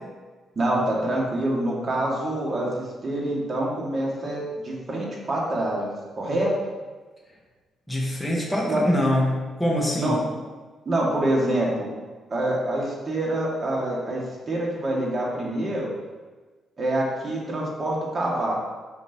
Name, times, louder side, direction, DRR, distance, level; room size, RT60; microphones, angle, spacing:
voice 1, 0.6-5.9 6.2-6.5 8.6-8.8 10.0-10.2 10.9-11.9 12.3-15.9 16.8-18.6, right 1 dB, 40° right, -3 dB, 2.3 m, -26 dB
voice 2, 7.9-10.2, equal, 5° left, -4 dB, 1.5 m, -24 dB
8.1 x 5.8 x 3.1 m, 1.4 s
cardioid pair, 80°, 0 cm